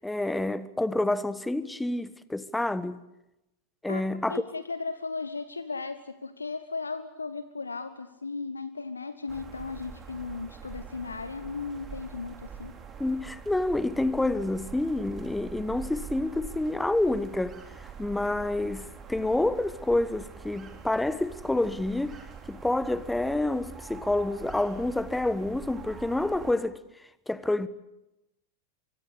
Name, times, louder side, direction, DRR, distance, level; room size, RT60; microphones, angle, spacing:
voice 1, 0.0-3.0 3.8-4.4 13.0-22.2 22.5-26.8 27.3-27.7, left 2 dB, 5° left, 1.2 m, -28 dB
voice 2, 3.9-12.7, left 4 dB, 80° left, 1.2 m, -36 dB
sound 1, 9.3-26.5, right 6 dB, 20° right, 4.0 m, -44 dB
24.5 x 24.0 x 8.3 m
figure-of-eight pair, 90°, 0 cm